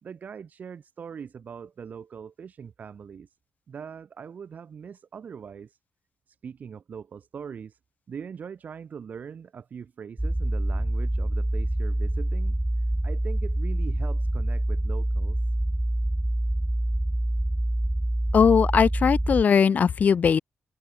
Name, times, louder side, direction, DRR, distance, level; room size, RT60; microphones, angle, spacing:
voice 1, 0.0-3.3 3.7-5.8 6.3-7.8 8.1-12.6 13.0-15.4, right 7 dB, 60° right, 3.2 m, -41 dB
sound 1, 10.2-19.4, right 1 dB, 10° right, 1.4 m, -26 dB
voice 2, 18.3-20.4, left 6 dB, 55° left, 1.1 m, -19 dB
cardioid pair, 100°, 3 cm